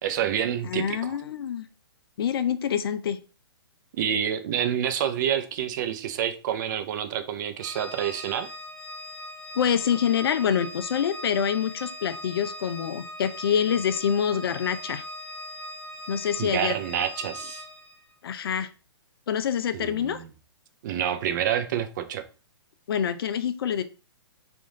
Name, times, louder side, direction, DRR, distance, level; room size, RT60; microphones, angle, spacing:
voice 1, 0.0-1.2 4.0-8.5 16.4-17.6 19.7-20.3 20.8-22.2, right 9 dB, 45° right, 0.6 m, -28 dB
voice 2, 0.6-1.7 2.2-3.2 9.6-15.0 16.1-16.7 18.2-18.7 19.3-20.2 22.9-23.8, left 8 dB, 60° left, 0.5 m, -26 dB
Organ, 7.6-18.0, left 1 dB, 10° left, 1.7 m, -40 dB
3.5 x 2.5 x 3.7 m
hypercardioid pair, 130°, 14 cm